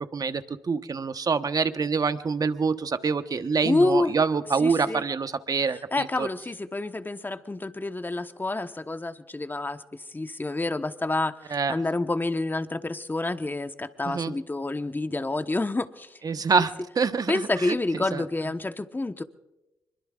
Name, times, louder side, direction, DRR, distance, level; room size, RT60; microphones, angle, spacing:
voice 1, 0.1-6.3 11.5-11.8 14.0-14.3 16.2-16.7 17.0-17.4 17.9-18.2, right 5 dB, 45° right, 10 dB, 1.2 m, -26 dB
voice 2, 3.6-4.1 4.6-5.0 5.7-16.2 16.5-16.7 17.3-19.2, left 2 dB, 20° left, 9 dB, 1.1 m, -28 dB
25.5 x 23.0 x 2.5 m, 1.0 s
hypercardioid pair, 40°, 9 cm